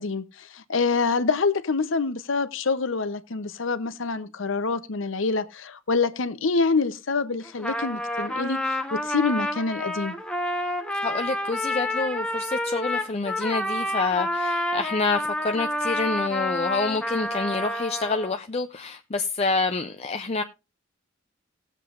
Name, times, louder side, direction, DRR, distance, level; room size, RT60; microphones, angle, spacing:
voice 1, 0.0-10.1, left 4 dB, 65° left, 0.8 m, -26 dB
Trumpet, 7.4-18.3, left 1 dB, 5° left, 0.9 m, -29 dB
voice 2, 11.0-20.4, left 3 dB, 30° left, 0.5 m, -27 dB
18.5 x 7.5 x 2.5 m
head